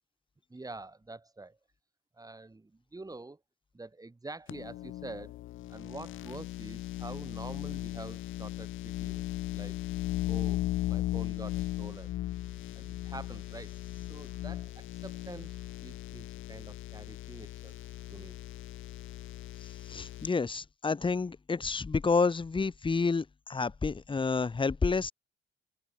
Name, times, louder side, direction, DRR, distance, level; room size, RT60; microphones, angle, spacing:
voice 1, 0.5-1.6 2.1-3.4 3.7-5.4 5.7-9.2 9.5-9.8 10.2-12.2 12.8-13.8 14.1-17.7 18.1-18.4, right 2 dB, 20° right, 6.6 m, -46 dB
sound 1, 4.5-20.3, left 15 dB, 85° left, 4.0 m, -37 dB
voice 2, 19.9-25.1, left 4 dB, 25° left, 1.5 m, -29 dB
cardioid pair, 90°, 20 cm